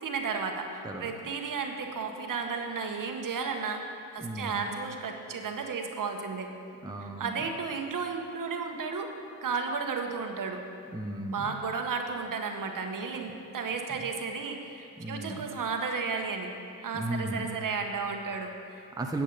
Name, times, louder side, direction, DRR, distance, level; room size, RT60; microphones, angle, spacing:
voice 1, 0.0-3.8 4.1-6.5 7.2-9.1 9.4-10.6 11.3-16.5 16.8-18.8, right 5 dB, 45° right, 4 dB, 1.2 m, -33 dB
voice 2, 4.2-4.6 6.8-7.4 10.9-11.5 15.0-15.5 16.9-17.5 19.0-19.2, right 2 dB, 10° right, 2 dB, 0.8 m, -35 dB
11.0 x 8.3 x 4.0 m, 2.7 s
hypercardioid pair, 55°, 46 cm